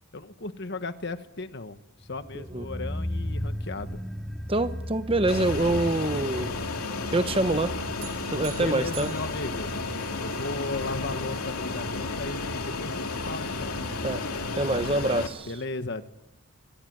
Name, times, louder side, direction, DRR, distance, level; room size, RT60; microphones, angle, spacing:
voice 1, 0.1-4.0 8.5-9.7 10.2-13.8 15.5-16.0, left 2 dB, 50° left, 10 dB, 1.5 m, -36 dB
sound 1, 2.0-13.0 13.3-13.4, equal, ahead, 2.3 m, -37 dB
voice 2, 2.3-2.7 4.5-6.6 7.1-7.7 8.3-9.1 14.0-14.2 14.6-15.5, right 2 dB, 25° right, 11 dB, 0.9 m, -26 dB
Fixed-wing aircraft airplane, 5.3-15.3, left 3 dB, 80° left, 2.7 m, -32 dB
sound 2, 8.0-10.5, right 12 dB, 60° right, 4.5 m, -46 dB
26.0 x 23.5 x 9.6 m, 1.0 s
head